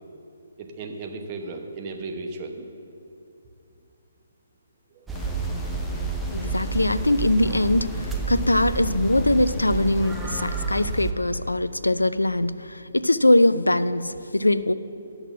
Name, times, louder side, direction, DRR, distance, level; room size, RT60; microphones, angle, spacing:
voice 1, 0.6-2.8 4.9-5.1, right 3 dB, 35° right, 4 dB, 1.0 m, -35 dB
sound 1, 5.1-11.6, left 5 dB, 35° left, 0.7 m, -40 dB
sound 2, 5.1-11.1, right 4 dB, 5° right, 0.7 m, -30 dB
voice 2, 6.3-14.7, left 1 dB, 90° left, 14 dB, 0.4 m, -22 dB
11.0 x 6.4 x 6.0 m, 2.7 s
figure-of-eight pair, 135°, 0 cm